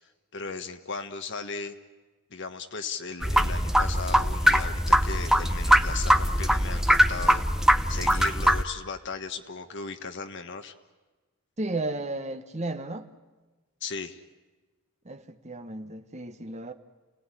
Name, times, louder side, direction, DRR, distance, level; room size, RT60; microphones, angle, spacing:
voice 1, 0.3-1.7 2.3-7.4 7.9-10.7 13.8-14.2, left 4 dB, 60° left, 1.5 m, -36 dB
sound 1, 3.2-8.6, equal, ahead, 0.8 m, -22 dB
voice 2, 11.6-13.1 15.0-16.7, right 2 dB, 35° right, 1.2 m, -34 dB
28.0 x 17.5 x 9.9 m
head